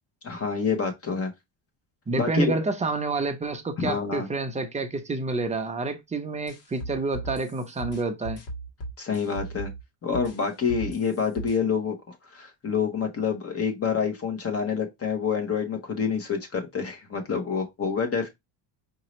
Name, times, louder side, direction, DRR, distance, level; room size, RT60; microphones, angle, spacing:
voice 1, 0.2-1.3 2.2-2.5 3.8-4.3 9.0-9.7 10.0-18.3, left 6 dB, 30° left, 1.0 m, -27 dB
voice 2, 2.1-8.4, right 3 dB, 15° right, 0.5 m, -28 dB
sound 1, 6.5-9.8 10.1-11.6, right 1 dB, 75° left, 1.7 m, -37 dB
5.1 x 2.8 x 3.1 m
cardioid pair, 160°, 45 cm